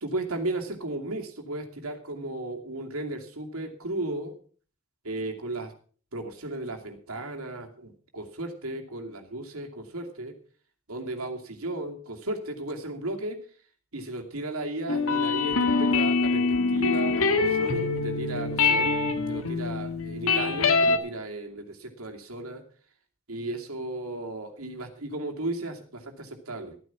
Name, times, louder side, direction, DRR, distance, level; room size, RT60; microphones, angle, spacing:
voice 1, 0.0-4.3 5.0-5.7 6.1-10.3 10.9-13.4 13.9-18.9 19.3-22.6 23.3-26.8, right 2 dB, 90° right, 3 dB, 2.6 m, -35 dB
sound 1, 14.9-21.0, left 4 dB, 75° left, 1.7 m, -24 dB
14.0 x 9.6 x 6.0 m, 0.43 s
head